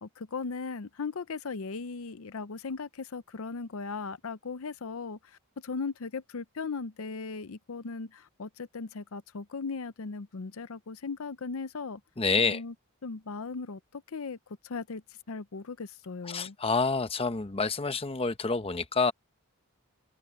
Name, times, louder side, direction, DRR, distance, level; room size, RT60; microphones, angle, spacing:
voice 1, 0.0-12.0 12.4-12.7 13.0-14.4 14.6-15.0 15.3-16.6, left 4 dB, 70° left, 0.6 m, -38 dB
voice 2, 12.2-12.6 16.2-19.1, left 4 dB, 25° left, 0.8 m, -28 dB
open air
head